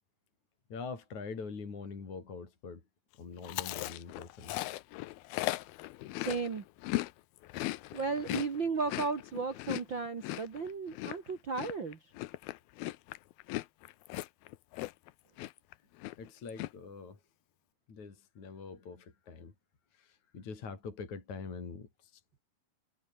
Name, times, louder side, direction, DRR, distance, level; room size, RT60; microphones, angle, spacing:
voice 1, 0.7-2.8 3.2-4.6 7.8-8.0 16.2-17.2 17.9-19.5 19.9-22.4, left 5 dB, 40° left, 5.6 m, -44 dB
Chewing mastication, 3.4-7.1 7.4-15.1 15.4-15.7 16.0-16.7, left 18 dB, 80° left, 2.3 m, -38 dB
voice 2, 6.1-6.6 7.9-12.0, right 4 dB, 55° right, 1.2 m, -35 dB
omnidirectional pair, 5.2 m